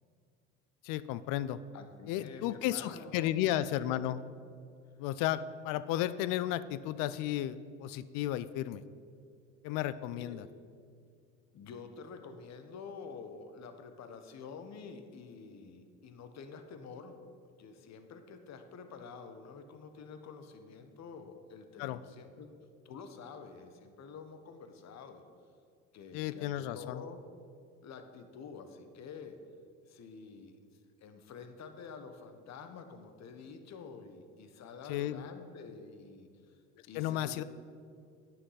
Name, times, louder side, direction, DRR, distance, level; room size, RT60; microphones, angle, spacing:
voice 1, 0.8-1.6 2.1-4.2 5.0-8.8 9.6-10.4 21.8-22.0 26.1-27.0 34.9-35.2 36.9-37.4, left 13 dB, 65° left, 15 dB, 0.5 m, -33 dB
voice 2, 1.7-3.6 10.2-10.4 11.5-17.2 17.6-22.5 22.8-25.2 25.9-27.2 27.8-29.4 29.9-30.6 31.0-36.6 36.9-37.4, left 5 dB, 45° left, 8 dB, 1.1 m, -48 dB
9.5 x 5.9 x 5.7 m, 2.3 s
hypercardioid pair, 70°, 36 cm